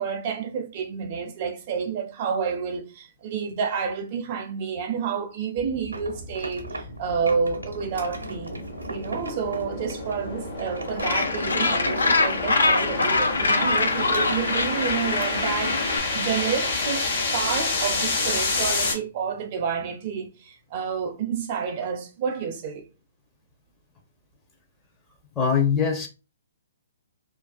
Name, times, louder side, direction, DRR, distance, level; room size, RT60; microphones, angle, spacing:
voice 1, 0.0-8.6 8.9-22.9, right 6 dB, 40° right, 0.4 m, -29 dB
sound 1, 5.6-18.9, left 3 dB, 45° left, 1.0 m, -30 dB
sound 2, 5.9-7.0 7.3-10.3 10.6-13.5 14.0-14.4, right 2 dB, 80° right, 0.6 m, -38 dB
Gull seagull, 11.0-16.0, left 3 dB, 70° left, 0.4 m, -24 dB
voice 2, 25.4-26.1, left 6 dB, 15° left, 0.6 m, -22 dB
2.4 x 2.3 x 2.3 m
figure-of-eight pair, 125°, 0 cm